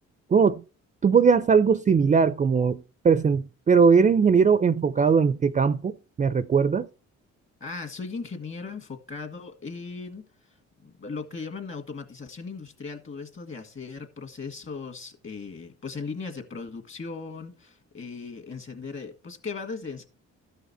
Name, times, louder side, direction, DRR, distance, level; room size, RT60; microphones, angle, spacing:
voice 1, 0.3-0.6 1.0-2.8 3.0-5.9 6.2-6.9, right 5 dB, 25° right, 0.4 m, -20 dB
voice 2, 7.6-10.6 10.8-20.1, left 4 dB, 40° left, 1.9 m, -38 dB
13.5 x 5.7 x 4.2 m
cardioid pair, 90°, 30 cm